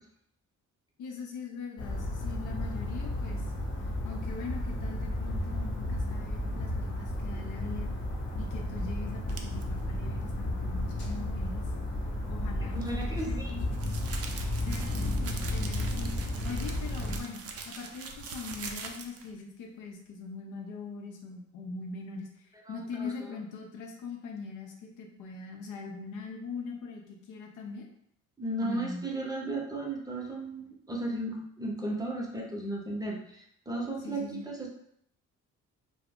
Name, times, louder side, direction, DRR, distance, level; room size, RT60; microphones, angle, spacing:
voice 1, 1.0-3.4 4.0-7.9 8.4-11.7 12.3-14.0 14.6-22.3 22.7-27.9 28.6-29.1 34.0-34.5, left 4 dB, 85° left, 1 dB, 0.6 m, -41 dB
sound 1, 1.8-17.2, left 1 dB, 40° left, 0.8 m, -33 dB
sound 2, 9.3-9.6 12.7-19.3, right 5 dB, 55° right, 0.5 m, -43 dB
voice 2, 12.6-13.5 22.7-23.1 28.4-34.7, right 2 dB, 15° right, -1 dB, 0.6 m, -35 dB
2.4 x 2.0 x 3.5 m, 0.72 s
cardioid pair, 90°, 30 cm